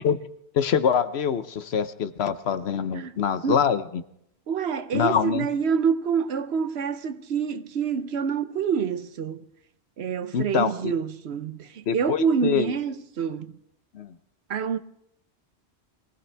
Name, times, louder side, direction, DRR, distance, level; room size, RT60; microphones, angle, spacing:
voice 1, 0.5-4.0 4.9-5.5 10.3-10.9 11.9-12.7 13.9-14.1, left 7 dB, 75° left, 1.1 m, -24 dB
voice 2, 4.5-9.4 10.0-13.5 14.5-14.8, right 6 dB, 75° right, 1.0 m, -27 dB
23.5 x 17.0 x 3.4 m
omnidirectional pair, 1.1 m